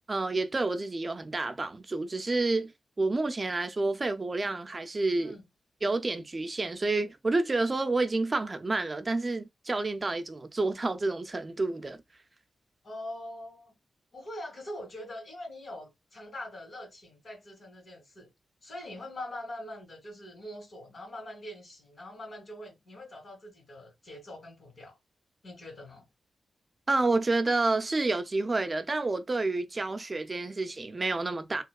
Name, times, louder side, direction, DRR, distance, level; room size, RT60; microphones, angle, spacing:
voice 1, 0.1-2.7 3.0-5.3 5.8-12.0 26.9-31.6, right 3 dB, 40° right, 0.4 m, -29 dB
voice 2, 12.8-13.8 14.1-18.3 18.6-25.0 25.4-26.1, left 1 dB, 60° left, 1.8 m, -43 dB
2.9 x 2.2 x 2.2 m
cardioid pair, 50°, 0 cm